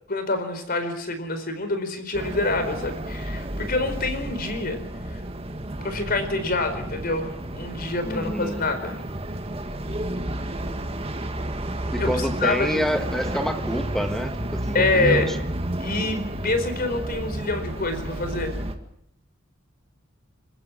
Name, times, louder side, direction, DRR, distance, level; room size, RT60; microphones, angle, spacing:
voice 1, 0.1-4.8 5.1-5.2 5.8-9.0 12.0-12.8 14.7-15.3 15.8-18.5, left 2 dB, 50° left, 8 dB, 4.5 m, -26 dB
sound 1, 2.1-18.8, right 1 dB, 30° right, 2.0 m, -31 dB
voice 2, 8.0-8.6 11.9-15.4, equal, ahead, 6 dB, 1.6 m, -28 dB
28.0 x 15.0 x 9.0 m, 0.75 s
head